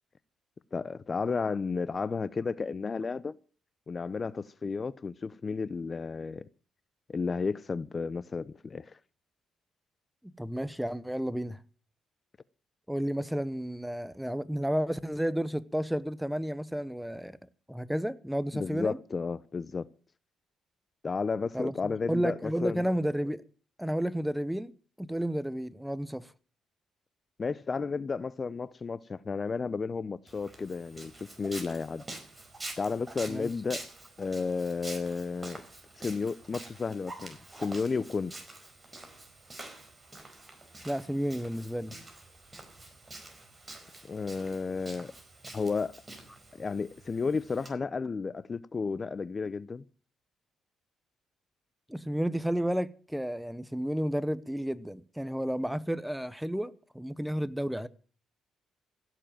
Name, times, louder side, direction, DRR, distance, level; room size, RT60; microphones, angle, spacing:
voice 1, 0.7-3.3 3.9-6.4 7.1-8.9 18.5-19.9 21.0-22.9 27.4-32.0 32.8-33.8 34.2-35.6 36.0-38.3 44.1-45.1 45.5-46.0 46.6-49.8, left 4 dB, 35° left, 0.6 m, -32 dB
voice 2, 10.2-11.6 12.9-17.4 17.7-19.0 21.5-23.5 23.8-24.7 25.0-26.3 33.3-33.5 40.8-42.0 51.9-57.9, equal, 5° right, 1.0 m, -32 dB
Walk footsteps, 30.3-47.7, right 2 dB, 20° right, 4.7 m, -47 dB
16.5 x 7.6 x 9.0 m
cardioid pair, 90°, 0 cm